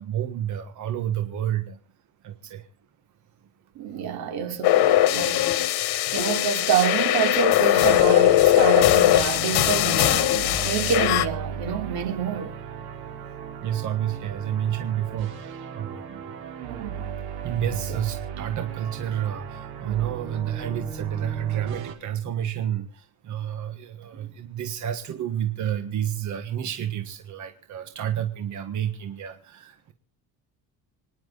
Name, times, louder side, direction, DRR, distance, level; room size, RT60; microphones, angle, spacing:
voice 1, 0.0-1.8 2.2-2.6 13.6-16.2 17.4-29.9, right 10 dB, 50° right, 1.6 m, -30 dB
voice 2, 3.7-5.5 6.1-12.5 17.9-18.0 24.1-24.2, right 8 dB, 75° right, 3.3 m, -27 dB
sound 1, 4.6-11.3, left 14 dB, 85° left, 1.5 m, -20 dB
sound 2, 8.7-21.9, right 7 dB, 90° right, 3.5 m, -36 dB
26.5 x 10.5 x 4.0 m
cardioid pair, 145°, 37 cm